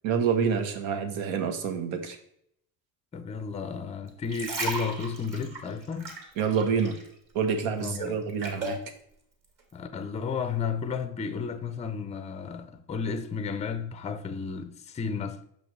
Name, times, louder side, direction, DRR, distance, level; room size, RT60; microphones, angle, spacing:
voice 1, 0.0-2.2 6.4-7.0 7.3-8.8, right 6 dB, 80° right, 1.2 m, -27 dB
voice 2, 3.1-6.1 7.8-8.2 9.7-15.4, left 5 dB, 15° left, 0.4 m, -33 dB
sound 1, 4.1-7.1 7.4-8.8 9.4-9.6, right 2 dB, 45° right, 2.2 m, -35 dB
6.6 x 5.5 x 3.2 m
cardioid pair, 125°, 46 cm